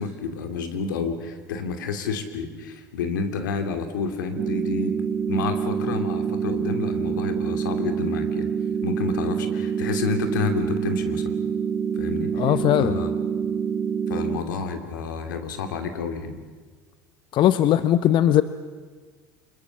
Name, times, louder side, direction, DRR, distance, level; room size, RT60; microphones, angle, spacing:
voice 1, 0.0-5.0 5.3-8.5 8.8-11.3 12.0-13.1 14.1-16.4, left 5 dB, 85° left, 7 dB, 2.8 m, -29 dB
sound 1, 4.4-14.4, right 7 dB, 40° right, 5.7 m, -26 dB
voice 2, 12.4-13.0 17.3-18.4, left 12 dB, 50° left, 13 dB, 0.9 m, -19 dB
26.0 x 22.0 x 7.2 m, 1.4 s
hypercardioid pair, 85°, 10 cm